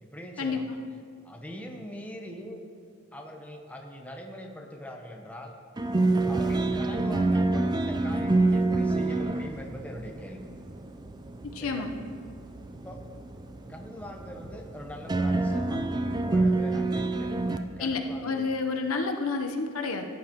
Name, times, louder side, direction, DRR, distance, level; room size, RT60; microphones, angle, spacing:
voice 1, 0.0-0.6 1.2-2.6 3.1-5.5 6.2-10.5 11.6-11.9 12.7-13.0 13.7-15.8 16.2-17.3 17.8-18.5, equal, 5° left, 2 dB, 0.8 m, -42 dB
sound 1, 5.8-17.6, right 2 dB, 20° right, 0.4 m, -28 dB
voice 2, 11.4-11.9 17.8-20.0, left 4 dB, 90° left, 4 dB, 0.9 m, -29 dB
15.5 x 9.5 x 3.0 m, 2.3 s
head